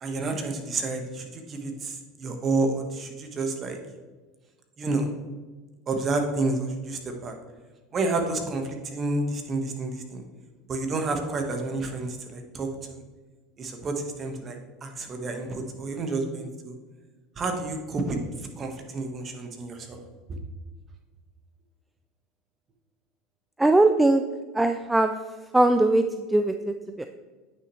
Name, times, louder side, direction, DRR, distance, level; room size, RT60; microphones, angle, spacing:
voice 1, 0.0-3.8 4.8-5.1 5.9-7.3 7.9-10.2 10.7-13.0 13.6-14.6 14.8-16.7 17.4-18.2 18.6-20.0, right 3 dB, 35° right, 4 dB, 1.4 m, -29 dB
voice 2, 23.6-24.2 24.5-25.1 25.5-26.0 26.3-27.1, right 2 dB, 10° right, 7 dB, 0.4 m, -20 dB
9.4 x 6.2 x 3.2 m, 1.3 s
supercardioid pair, 100°, 0 cm